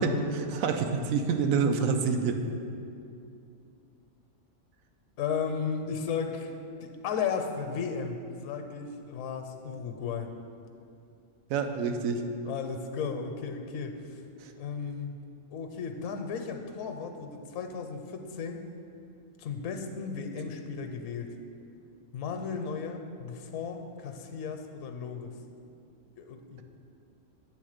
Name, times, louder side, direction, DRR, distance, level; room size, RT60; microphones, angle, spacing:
voice 1, 0.0-2.4 11.5-12.2, right 5 dB, 90° right, 6 dB, 1.0 m, -27 dB
voice 2, 5.2-6.5 6.8-10.3 12.4-14.2 14.6-15.1 15.5-18.6 19.4-21.3 22.1-25.3 26.2-26.6, left 6 dB, 75° left, 5 dB, 0.9 m, -35 dB
7.9 x 3.6 x 6.5 m, 2.5 s
omnidirectional pair, 1.4 m